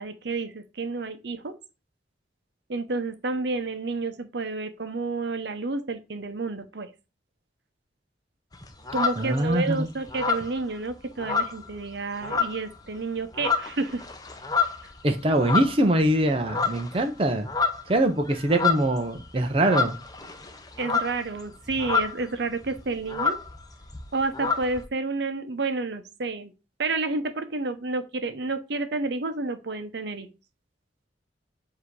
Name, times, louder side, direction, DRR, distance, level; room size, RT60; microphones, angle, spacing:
voice 1, 0.0-1.5 2.7-6.9 8.9-14.0 20.8-23.4 24.1-26.5 26.8-30.3, right 3 dB, 65° right, 0.8 m, -30 dB
sound 1, 8.5-9.7 10.1-11.9 12.2-12.8 13.2-16.1 16.4-17.0 17.3-22.3 22.6-22.7 22.9-24.8, left 5 dB, 20° left, 0.7 m, -28 dB
voice 2, 9.2-9.9 15.0-17.5 17.9-20.0, right 1 dB, 30° right, 0.6 m, -23 dB
7.3 x 2.8 x 4.6 m
head